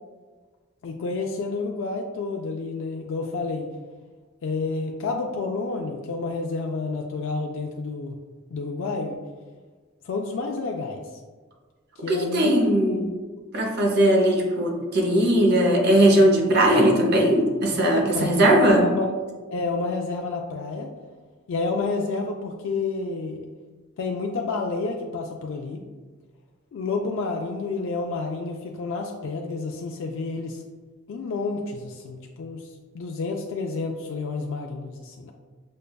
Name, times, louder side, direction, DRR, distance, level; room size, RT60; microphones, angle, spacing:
voice 1, 0.8-3.7 4.4-8.2 8.5-9.2 10.0-11.0 12.0-13.1 13.4-13.5 17.9-19.1 19.5-20.9 21.5-23.4 24.0-25.8 26.7-30.6 31.1-32.7 32.9-35.3, left 3 dB, 65° left, 1 dB, 0.3 m, -29 dB
voice 2, 12.1-13.1 13.5-18.9, right 1 dB, 55° right, 1 dB, 0.7 m, -19 dB
6.3 x 2.2 x 2.2 m, 1.4 s
head